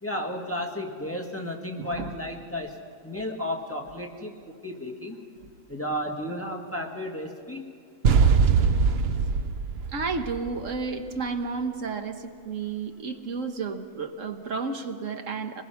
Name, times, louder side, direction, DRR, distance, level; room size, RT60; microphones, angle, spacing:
voice 1, 0.0-5.2 5.7-7.6, left 1 dB, 10° left, 0 dB, 1.6 m, -33 dB
voice 2, 1.8-2.1 9.9-15.6, right 4 dB, 75° right, 6 dB, 1.4 m, -32 dB
sound 1, 8.0-11.0, right 5 dB, 55° right, 0.9 m, -22 dB
25.0 x 21.0 x 5.8 m, 2.3 s
omnidirectional pair, 1.4 m